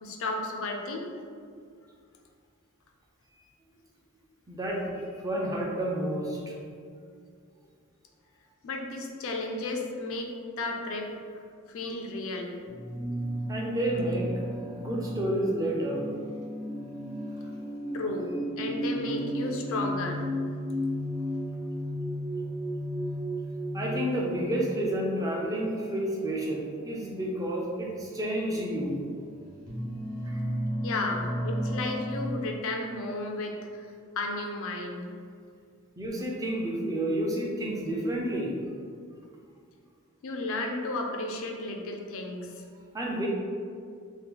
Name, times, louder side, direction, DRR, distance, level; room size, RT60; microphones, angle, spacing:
voice 1, 0.0-1.1 8.6-10.3 10.6-11.1 11.7-12.5 17.9-20.2 30.8-35.1 40.2-42.6, left 2 dB, 65° left, 2 dB, 0.4 m, -33 dB
voice 2, 4.5-4.9 5.2-6.5 13.5-14.3 14.7-16.0 23.7-29.0 36.0-38.5 42.9-43.3, right 1 dB, 15° right, -3 dB, 0.4 m, -30 dB
sound 1, 12.7-24.9 25.8-26.1 27.2-27.3 27.9-28.1 28.8-32.3, equal, 70° right, 1.0 m, -34 dB
2.8 x 2.3 x 3.6 m, 2.2 s
head